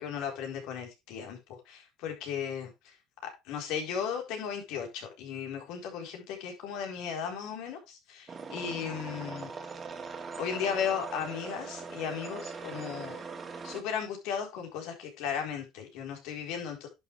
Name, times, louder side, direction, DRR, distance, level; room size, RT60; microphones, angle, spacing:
voice 1, 0.0-2.9 3.4-9.5 10.4-13.2 13.6-16.9, left 7 dB, 75° left, 4.2 m, -36 dB
sound 1, 8.3-13.8, right 5 dB, 30° right, 2.2 m, -41 dB
11.0 x 6.8 x 3.4 m
supercardioid pair, 105°, 0 cm